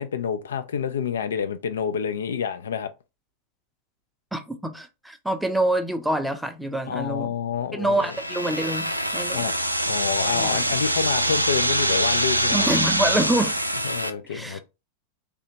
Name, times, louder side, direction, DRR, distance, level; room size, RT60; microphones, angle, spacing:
voice 1, 0.0-2.9 6.9-8.1 9.3-9.5 9.9-12.7 13.8-14.6, left 7 dB, 65° left, 0.3 m, -28 dB
voice 2, 4.3-7.3 7.7-9.5 10.2-10.6 11.3-11.4 12.5-13.6 14.3-14.6, right 1 dB, 5° right, 0.5 m, -26 dB
sound 1, 8.0-14.1, right 1 dB, 85° right, 0.4 m, -24 dB
3.3 x 2.8 x 2.8 m
figure-of-eight pair, 90°, 0 cm